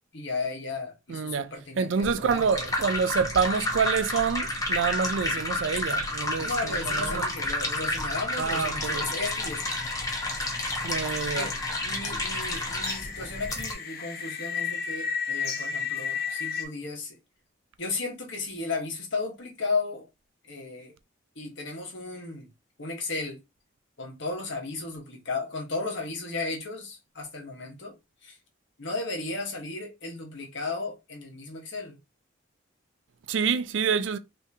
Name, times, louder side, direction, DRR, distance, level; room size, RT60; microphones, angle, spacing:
voice 1, 0.1-2.7 6.4-9.6 11.3-11.5 11.8-17.2 17.8-20.1 20.4-20.9 21.3-22.5 22.8-23.4 24.0-27.9 28.2-28.4 28.8-32.0, left 3 dB, 65° left, 1.2 m, -34 dB
voice 2, 1.1-7.2 8.4-9.1 10.8-11.5 33.3-34.2, right 6 dB, 70° right, 0.4 m, -27 dB
sound 1, 2.0-13.7, left 2 dB, 20° left, 0.8 m, -30 dB
sound 2, 8.9-16.7, left 6 dB, 50° left, 0.7 m, -35 dB
3.5 x 2.9 x 2.7 m
head